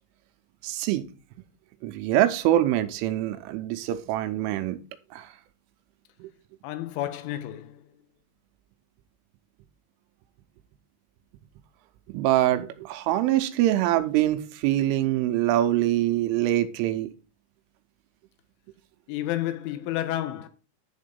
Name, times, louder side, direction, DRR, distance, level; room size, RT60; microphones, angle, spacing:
voice 1, 0.6-1.1 1.8-4.8 5.1-5.3 6.2-6.3 12.1-17.1, right 13 dB, 85° right, 3.1 m, -24 dB
voice 2, 6.6-7.9 19.1-20.5, left 13 dB, 80° left, 3.1 m, -31 dB
10.5 x 3.7 x 5.2 m
omnidirectional pair, 5.9 m